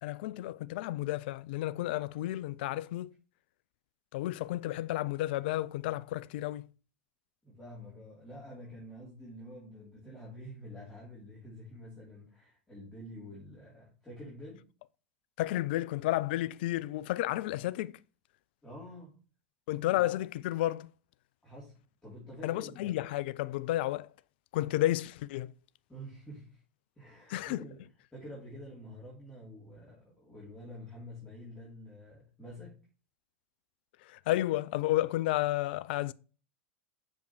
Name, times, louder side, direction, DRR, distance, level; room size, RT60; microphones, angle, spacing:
voice 1, 0.0-3.1 4.1-6.7 15.4-18.0 19.7-20.9 22.4-24.1 24.5-25.5 27.3-27.6 34.0-36.1, left 15 dB, 60° left, 0.4 m, -32 dB
voice 2, 7.4-14.7 18.6-19.2 19.9-20.0 21.4-22.9 25.9-26.6 26.9-27.8 28.1-32.8, equal, 5° left, 3.2 m, -48 dB
6.6 x 5.1 x 3.1 m
figure-of-eight pair, 90°, 6 cm